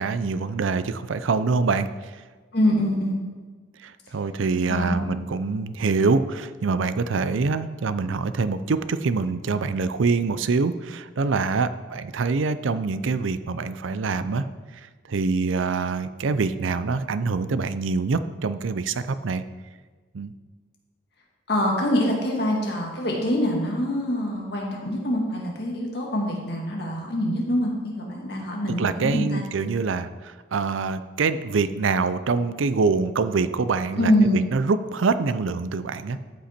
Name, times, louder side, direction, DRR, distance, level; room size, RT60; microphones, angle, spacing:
voice 1, 0.0-1.9 3.8-14.4 15.1-19.4 20.1-20.3 28.8-36.2, right 4 dB, 85° right, 13 dB, 0.5 m, -25 dB
voice 2, 2.5-3.2 4.7-5.1 21.5-29.4 33.9-34.4, equal, 55° left, -1 dB, 1.8 m, -24 dB
13.0 x 5.6 x 4.3 m, 1.4 s
head